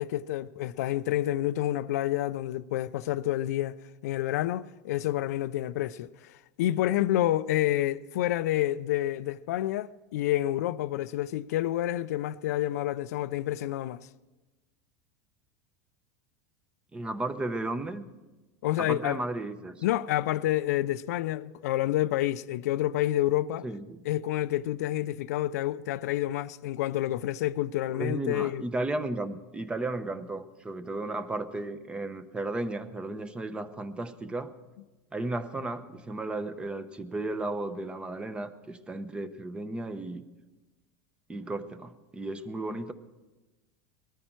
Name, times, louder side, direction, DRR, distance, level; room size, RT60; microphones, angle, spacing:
voice 1, 0.0-3.8 4.0-14.1 18.6-19.2 19.8-23.7 24.0-28.6, left 14 dB, 85° left, 0.5 m, -29 dB
voice 2, 16.9-18.1 18.8-19.8 23.6-24.0 27.9-34.5 35.1-40.2 41.3-42.9, right 2 dB, 10° right, 0.8 m, -34 dB
20.0 x 14.0 x 4.5 m
supercardioid pair, 135°, 8 cm